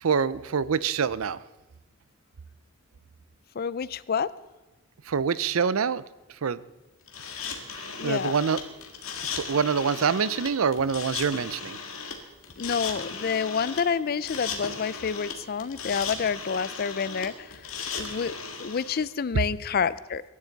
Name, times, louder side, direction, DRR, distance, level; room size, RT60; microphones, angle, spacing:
voice 1, 0.0-1.4 5.1-6.0 6.4-6.6 8.0-8.6 9.4-11.8, right 6 dB, 90° right, 18 dB, 0.5 m, -25 dB
voice 2, 3.6-4.3 8.0-8.4 12.6-17.5 17.9-20.2, left 6 dB, 45° left, 18 dB, 0.4 m, -28 dB
sound 1, 7.1-19.0, left 5 dB, 90° left, 2.0 m, -36 dB
23.0 x 11.0 x 4.0 m, 1.0 s
head